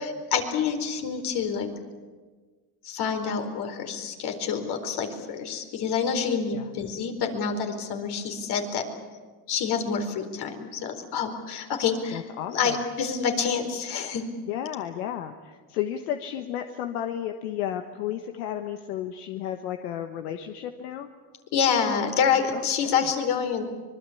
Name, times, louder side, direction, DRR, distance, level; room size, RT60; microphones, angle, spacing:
voice 1, 0.0-1.7 2.8-8.8 9.5-12.2 12.5-14.2 21.5-23.6, left 6 dB, 60° left, 5 dB, 4.4 m, -27 dB
voice 2, 12.1-12.8 14.5-21.1 22.5-23.0, left 10 dB, 85° left, 6 dB, 1.4 m, -33 dB
25.0 x 21.5 x 8.6 m, 1.4 s
supercardioid pair, 90°, 44 cm